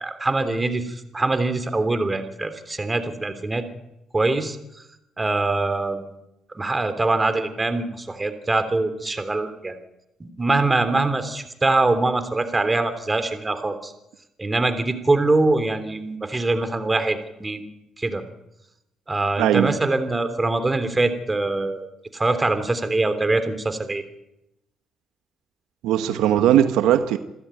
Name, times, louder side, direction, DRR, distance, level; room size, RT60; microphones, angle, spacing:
voice 1, 0.0-3.7 4.1-4.6 5.2-6.0 6.5-9.8 10.2-13.9 14.4-17.7 18.0-18.2 19.1-21.9 22.1-24.0, right 2 dB, 20° right, 10 dB, 3.2 m, -23 dB
voice 2, 19.4-19.7 25.8-27.2, right 11 dB, 80° right, 10 dB, 1.1 m, -19 dB
27.0 x 13.5 x 9.2 m, 0.90 s
supercardioid pair, 70°, 0 cm